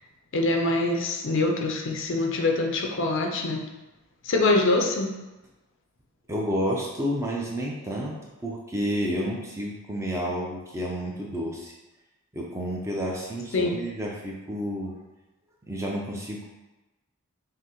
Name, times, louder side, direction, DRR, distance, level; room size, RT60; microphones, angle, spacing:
voice 1, 0.3-3.6 4.2-5.1 13.5-13.7, left 2 dB, 55° left, 1 dB, 0.5 m, -24 dB
voice 2, 6.3-11.7 12.3-14.9 15.7-16.5, equal, 15° right, -3 dB, 0.5 m, -30 dB
5.7 x 2.0 x 2.9 m, 1.1 s
head